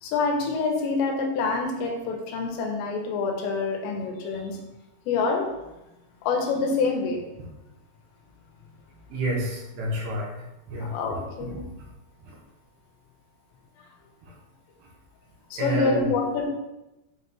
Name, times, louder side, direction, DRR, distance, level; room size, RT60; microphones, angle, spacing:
voice 1, 0.0-4.6 5.1-5.5 6.2-7.2 10.8-11.6 15.5-16.5, left 4 dB, 90° left, 2 dB, 3.0 m, -26 dB
voice 2, 9.1-10.3 10.7-10.9 11.4-11.6 12.2-12.4 14.2-14.3 15.6-16.1, right 1 dB, 80° right, -2 dB, 3.2 m, -29 dB
6.4 x 5.1 x 2.9 m, 0.98 s
omnidirectional pair, 5.1 m